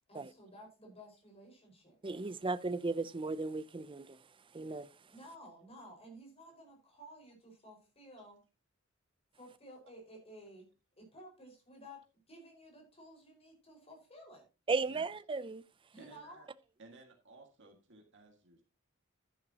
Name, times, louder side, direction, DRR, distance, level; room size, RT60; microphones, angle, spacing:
voice 1, 0.1-2.0 5.1-8.4 9.3-10.7 11.0-14.4 15.9-16.5, equal, 30° left, 5.3 m, -54 dB
voice 2, 2.0-4.2 4.5-4.9 14.7-15.6, right 3 dB, 25° right, 0.5 m, -35 dB
voice 3, 16.0-16.5 16.8-18.6, right 2 dB, 60° right, 2.1 m, -57 dB
11.5 x 11.0 x 2.9 m
head